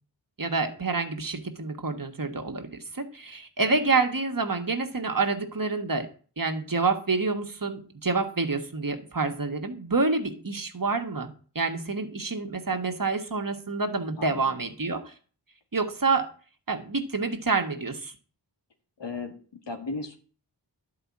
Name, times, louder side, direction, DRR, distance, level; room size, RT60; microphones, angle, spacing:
voice 1, 0.4-6.1 6.4-15.1 15.7-16.3 16.7-18.1, right 4 dB, 50° right, 6 dB, 1.6 m, -28 dB
voice 2, 19.0-19.3 19.7-20.1, left 3 dB, 80° left, 5 dB, 2.0 m, -35 dB
11.0 x 5.1 x 8.5 m, 0.41 s
cardioid pair, 40°, 42 cm